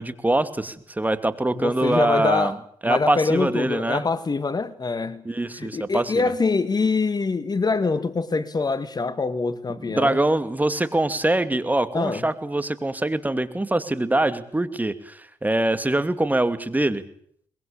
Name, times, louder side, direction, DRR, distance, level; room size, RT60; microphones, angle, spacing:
voice 1, 0.0-2.6 2.8-4.0 5.2-6.3 9.8-17.0, right 1 dB, 15° right, 2.5 m, -24 dB
voice 2, 1.5-2.6 2.8-5.2 5.6-10.2 11.9-12.3, left 4 dB, 35° left, 1.8 m, -24 dB
23.0 x 22.0 x 8.8 m
supercardioid pair, 65°, 12 cm